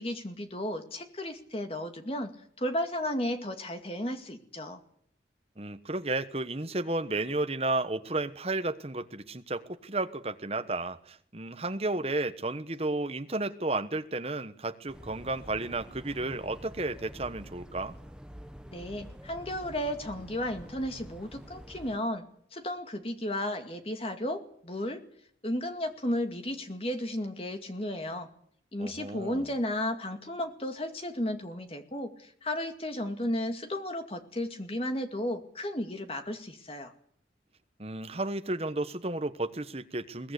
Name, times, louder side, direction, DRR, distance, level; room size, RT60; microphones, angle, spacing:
voice 1, 0.0-4.8 18.7-22.2 22.5-25.0 25.4-28.3 28.7-36.9, left 1 dB, 30° left, 2.2 m, -34 dB
voice 2, 5.6-18.0 28.8-29.5 37.8-40.3, right 2 dB, 35° right, 1.2 m, -33 dB
sound 1, 14.9-22.0, equal, 5° right, 1.1 m, -47 dB
22.0 x 18.5 x 8.3 m
head